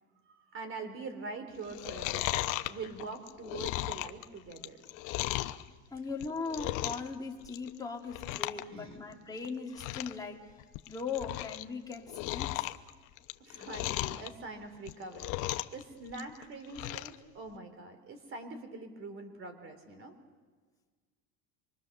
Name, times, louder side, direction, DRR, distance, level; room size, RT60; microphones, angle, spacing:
voice 1, 0.3-4.8 8.6-9.0 13.4-20.2, right 3 dB, 35° right, 8 dB, 3.5 m, -44 dB
Chewing mastication, 1.6-5.6 6.1-7.1 7.4-7.8 8.1-8.6 8.9-9.0 9.4-9.5 9.7-10.2 10.6-11.6 11.9-14.3 14.8-15.8 16.1-17.2 17.5-17.6, left 18 dB, 60° left, 0.9 m, -36 dB
voice 2, 5.7-10.4 10.9-12.7, left 4 dB, 10° left, 0 dB, 2.5 m, -39 dB
26.0 x 23.0 x 6.7 m, 1.5 s
cardioid pair, 140°, 36 cm